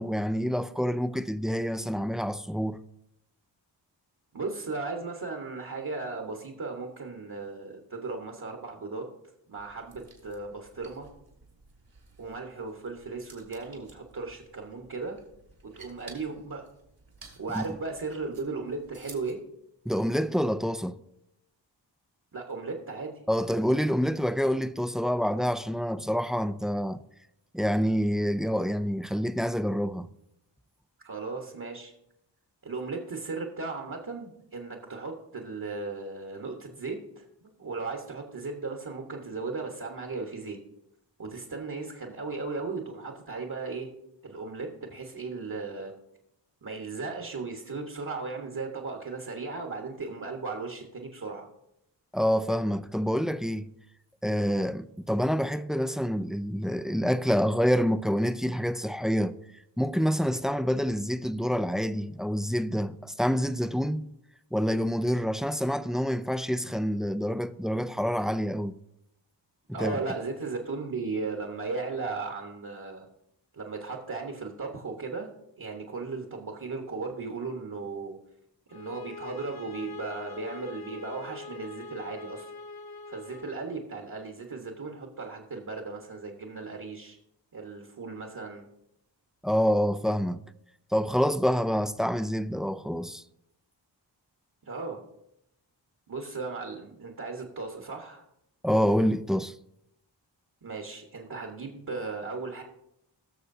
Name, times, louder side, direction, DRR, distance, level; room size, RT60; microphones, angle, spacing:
voice 1, 0.0-2.8 17.5-17.6 19.9-21.0 23.3-27.0 27.5-30.1 52.1-53.7 54.2-59.3 59.8-64.1 64.5-68.8 69.8-70.0 89.4-90.4 90.9-93.2 98.6-99.5, equal, ahead, 0.4 m, -27 dB
voice 2, 4.3-9.1 9.5-11.1 12.2-15.2 15.7-16.7 17.4-19.4 22.3-23.1 31.0-31.9 32.6-40.6 41.2-43.9 44.2-45.9 46.6-51.5 69.7-73.1 73.5-75.3 75.6-78.2 78.7-82.5 83.1-87.2 87.5-88.6 94.6-95.0 96.1-98.2 100.6-102.6, right 4 dB, 50° right, 1.4 m, -36 dB
sound 1, 9.6-19.3, right 4 dB, 70° right, 3.0 m, -54 dB
sound 2, 78.7-83.7, left 4 dB, 55° left, 0.6 m, -43 dB
19.5 x 6.5 x 2.7 m
cardioid pair, 50°, 45 cm